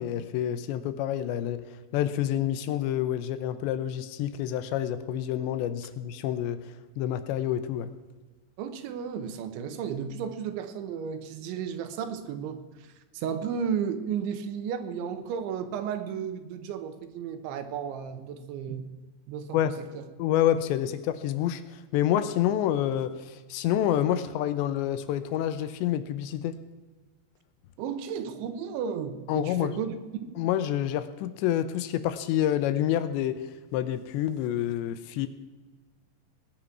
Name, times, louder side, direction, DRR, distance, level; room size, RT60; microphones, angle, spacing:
voice 1, 0.0-1.6 1.9-7.9 19.5-19.8 20.2-26.6 29.3-29.7 30.4-35.3, left 11 dB, 80° left, 12 dB, 2.9 m, -28 dB
voice 2, 8.6-18.9 19.3-20.1 27.8-29.9 30.2-30.4, right 7 dB, 85° right, 9 dB, 3.5 m, -34 dB
19.5 x 9.3 x 6.0 m, 1.3 s
omnidirectional pair, 5.3 m